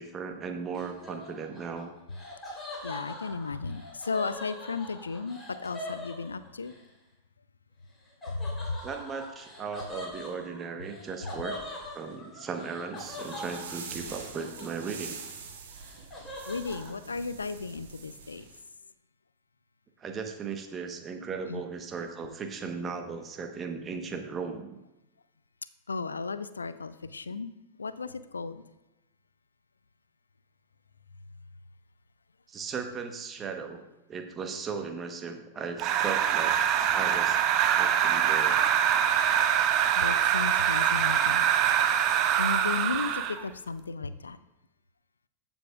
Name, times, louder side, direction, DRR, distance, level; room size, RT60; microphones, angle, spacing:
voice 1, 0.0-1.9 8.8-11.6 11.9-15.2 20.0-24.8 32.5-33.8 34.1-36.6 36.9-37.4 37.7-38.6, right 5 dB, 25° right, 5 dB, 1.0 m, -37 dB
Laughter, 0.7-6.8 8.2-15.2 15.5-16.9, left 1 dB, 10° left, 3.2 m, -43 dB
voice 2, 2.8-6.7 8.3-8.8 16.5-18.5 21.5-21.6 25.9-27.5 27.8-28.6 40.0-41.5 42.4-44.4, left 4 dB, 75° left, 15 dB, 0.4 m, -34 dB
sound 1, 13.0-18.6, right 5 dB, 60° right, 1.3 m, -44 dB
sound 2, 35.8-43.4, right 9 dB, 40° right, 0.6 m, -24 dB
14.0 x 7.0 x 2.3 m, 0.96 s
figure-of-eight pair, 90°, 0 cm